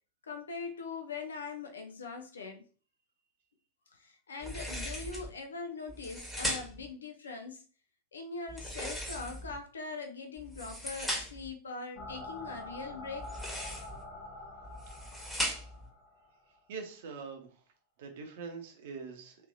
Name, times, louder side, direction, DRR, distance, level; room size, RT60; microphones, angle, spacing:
voice 1, 0.3-2.6 3.9-7.6 8.1-13.3, left 4 dB, 70° left, 6 dB, 0.5 m, -42 dB
sound 1, 4.4-5.3 5.9-6.9 8.5-9.6 10.4-11.5 13.2-14.0 14.6-15.9, equal, ahead, 1.2 m, -38 dB
sound 2, 12.0-16.6, left 2 dB, 45° left, 0.8 m, -46 dB
voice 2, 16.7-17.5 18.0-19.4, right 5 dB, 55° right, 4 dB, 0.8 m, -43 dB
3.2 x 3.2 x 2.5 m, 0.39 s
figure-of-eight pair, 90°, 0 cm